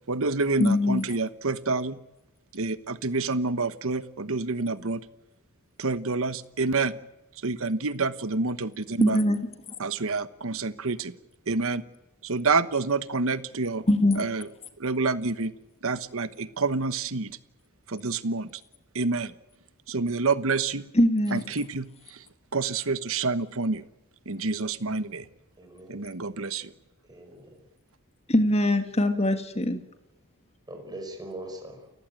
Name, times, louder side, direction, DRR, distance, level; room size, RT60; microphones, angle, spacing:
voice 1, 0.1-2.0 2.5-5.0 5.8-7.0 7.4-9.2 9.8-11.1 11.5-11.8 12.2-13.8 14.2-14.5 14.8-15.5 15.8-17.3 17.9-18.6 18.9-19.3 19.9-20.9 21.3-22.2 22.5-23.8 24.3-25.2 25.9-26.7, right 3 dB, 65° right, 14 dB, 1.2 m, -28 dB
voice 2, 0.6-1.1 9.0-9.4 13.9-14.2 20.9-21.4 28.3-29.8, left 1 dB, 30° left, 8 dB, 2.0 m, -22 dB
voice 3, 25.6-26.0 27.1-27.6 30.7-31.9, right 1 dB, 20° right, 3 dB, 5.5 m, -41 dB
29.5 x 15.5 x 8.9 m, 0.96 s
head